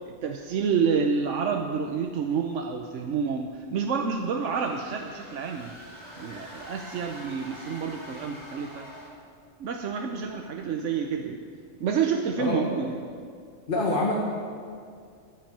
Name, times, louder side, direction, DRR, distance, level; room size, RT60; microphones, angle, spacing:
voice 1, 0.1-5.8 6.2-8.9 9.6-11.4 11.8-13.0, right 6 dB, 70° right, 4 dB, 1.1 m, -28 dB
sound 1, 4.4-9.3, equal, 30° right, 2.5 m, -45 dB
voice 2, 13.7-14.1, left 2 dB, 40° left, -3 dB, 1.7 m, -25 dB
11.0 x 10.0 x 8.7 m, 2.2 s
omnidirectional pair, 1.3 m